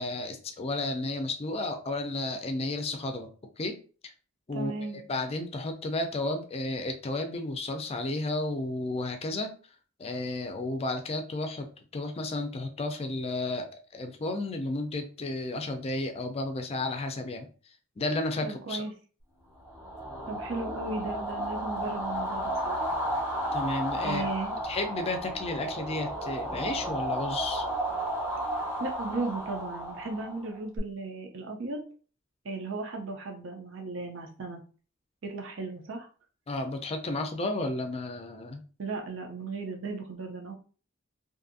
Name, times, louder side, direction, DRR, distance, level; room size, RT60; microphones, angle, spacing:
voice 1, 0.0-3.3 3.6-3.7 4.5-9.5 10.0-11.7 11.9-13.7 13.9-17.5 18.0-18.8 23.5-24.2 24.6-27.7 36.5-38.6, left 2 dB, 30° left, 5 dB, 0.4 m, -32 dB
voice 2, 4.5-5.0 18.4-18.9 20.3-22.9 24.0-24.6 28.8-31.8 32.4-34.6 35.2-36.1 38.8-40.5, right 3 dB, 65° right, 3 dB, 0.5 m, -36 dB
sound 1, 19.7-30.8, right 1 dB, 10° right, 0.6 m, -33 dB
2.6 x 2.5 x 2.5 m, 0.39 s
head